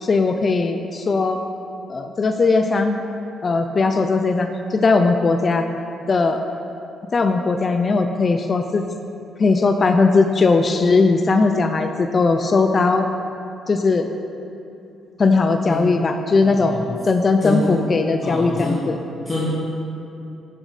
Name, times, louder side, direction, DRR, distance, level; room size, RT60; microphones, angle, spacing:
voice 1, 0.0-1.4 1.9-3.0 3.4-5.7 6.1-6.4 7.1-8.8 9.4-13.1 13.7-14.1 15.2-19.0, left 3 dB, 40° left, 6 dB, 0.4 m, -18 dB
voice 2, 16.4-16.8 17.4-17.8 18.2-18.8 19.2-19.5, left 2 dB, 20° left, -9 dB, 1.6 m, -25 dB
6.5 x 6.2 x 4.1 m, 2.7 s
cardioid pair, 90°, 0 cm